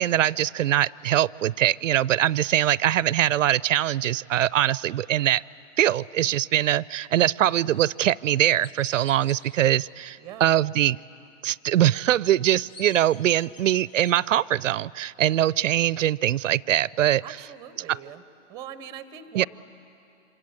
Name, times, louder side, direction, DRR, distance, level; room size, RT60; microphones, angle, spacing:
voice 1, 0.0-5.4 5.8-11.0 11.4-17.2 17.9-18.0 19.3-19.5, right 12 dB, 80° right, 23 dB, 0.5 m, -22 dB
Chirp tweet, 7.7-7.9 8.6-9.4 12.3-14.2, left 4 dB, 75° left, 5.0 m, -48 dB
voice 2, 10.2-10.6 15.2-15.3 17.2-18.2 18.5-19.5, right 9 dB, 10° right, 13 dB, 0.6 m, -41 dB
27.0 x 26.5 x 7.9 m, 2.8 s
hypercardioid pair, 150°, 38 cm